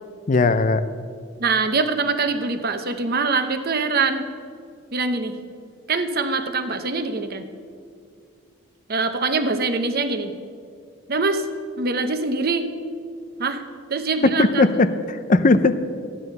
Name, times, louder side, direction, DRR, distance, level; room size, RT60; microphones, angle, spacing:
voice 1, 0.3-0.8 14.2-15.7, left 3 dB, 35° left, 12 dB, 0.5 m, -18 dB
voice 2, 1.4-4.2 4.9-5.4 5.9-7.4 8.9-10.3 11.1-11.5 11.8-12.7 13.4-13.6 13.9-14.8, right 4 dB, 45° right, 8 dB, 0.9 m, -23 dB
14.0 x 9.9 x 6.7 m, 2.3 s
head